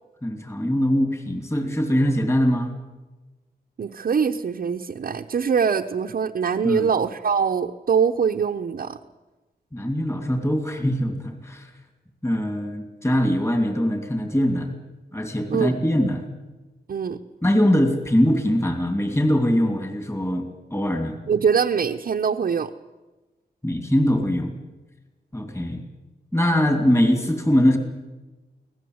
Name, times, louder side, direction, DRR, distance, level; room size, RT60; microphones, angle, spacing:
voice 1, 0.2-2.7 6.6-6.9 9.7-11.7 12.2-14.7 15.1-16.3 17.4-20.5 20.7-21.2 23.6-24.5 25.3-25.8 26.3-27.8, equal, 15° left, 6 dB, 2.7 m, -22 dB
voice 2, 3.8-9.0 15.5-15.8 16.9-17.2 21.3-22.7, right 6 dB, 55° right, 3 dB, 0.9 m, -23 dB
25.0 x 17.5 x 7.9 m, 1.2 s
wide cardioid pair, 140°, 17 cm